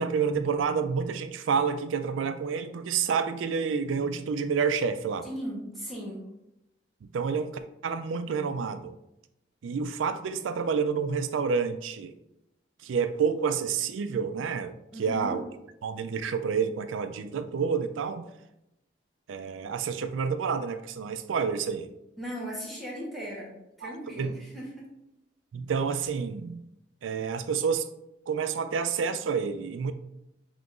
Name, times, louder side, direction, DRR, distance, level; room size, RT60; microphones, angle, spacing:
voice 1, 0.0-5.3 7.0-9.0 9.6-12.2 12.8-15.4 15.8-18.3 19.3-21.9 23.8-24.3 25.5-26.6 27.0-27.9 28.3-29.9, right 6 dB, 85° right, 10 dB, 0.4 m, -29 dB
voice 2, 5.2-6.2 14.9-15.4 22.2-24.9, equal, ahead, -6 dB, 1.1 m, -37 dB
5.6 x 2.9 x 2.5 m, 0.84 s
head